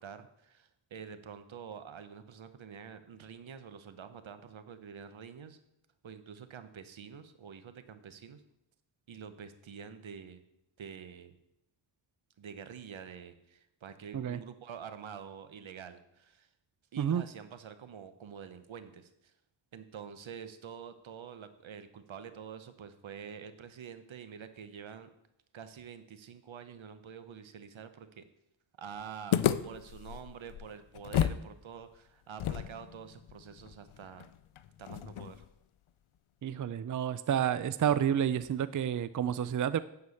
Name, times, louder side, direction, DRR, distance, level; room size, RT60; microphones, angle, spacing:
voice 1, 0.0-5.6 6.0-8.4 9.1-10.4 10.8-11.3 12.4-16.5 16.9-19.3 19.7-25.1 25.5-28.2 28.8-34.3 34.8-35.4, right 7 dB, 75° right, 10 dB, 1.0 m, -47 dB
sound 1, 29.3-31.5 31.7-31.8 32.4-35.5, left 10 dB, 85° left, 0.6 m, -33 dB
voice 2, 36.4-39.8, right 9 dB, 40° right, 15 dB, 0.5 m, -30 dB
9.5 x 4.7 x 7.1 m, 0.81 s
cardioid pair, 50°, 48 cm